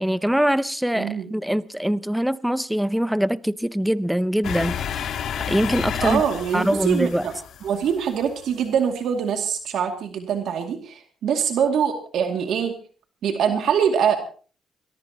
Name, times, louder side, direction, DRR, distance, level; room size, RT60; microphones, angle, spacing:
voice 1, 0.0-6.2 6.5-7.3, equal, 5° right, 0.7 m, -23 dB
voice 2, 0.9-1.3 6.0-7.3 7.6-12.7 13.2-14.2, right 7 dB, 75° right, 2.4 m, -23 dB
sound 1, 4.4-8.3, left 8 dB, 70° left, 1.5 m, -31 dB
22.0 x 20.5 x 2.9 m
cardioid pair, 90°, 0 cm